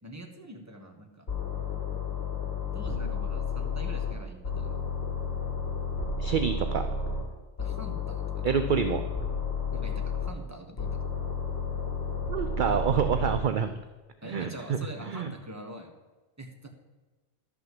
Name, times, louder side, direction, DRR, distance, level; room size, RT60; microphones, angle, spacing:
voice 1, 0.0-1.2 2.7-4.8 7.6-8.5 9.7-10.9 12.7-12.8 14.2-15.9 16.4-16.7, right 1 dB, 15° right, 3 dB, 1.4 m, -44 dB
sound 1, 1.3-4.1 4.4-7.2 7.6-10.3 10.8-13.4, left 4 dB, 55° left, 2.8 m, -32 dB
voice 2, 6.2-6.9 8.4-9.1 12.3-13.7 14.2-15.3, right 7 dB, 55° right, 9 dB, 0.6 m, -27 dB
11.5 x 6.0 x 7.7 m, 1.2 s
omnidirectional pair, 1.2 m